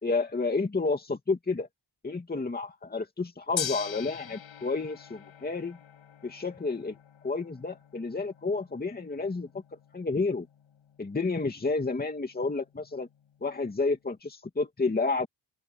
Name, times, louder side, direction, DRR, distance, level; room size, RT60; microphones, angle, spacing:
voice 1, 0.0-1.7 2.0-5.8 6.2-7.0 7.2-9.5 9.9-10.5 11.0-13.1 13.4-15.3, left 3 dB, 20° left, 2.4 m, -30 dB
Gong, 3.6-13.8, left 9 dB, 85° left, 7.8 m, -44 dB
open air
wide cardioid pair, 165°, 46 cm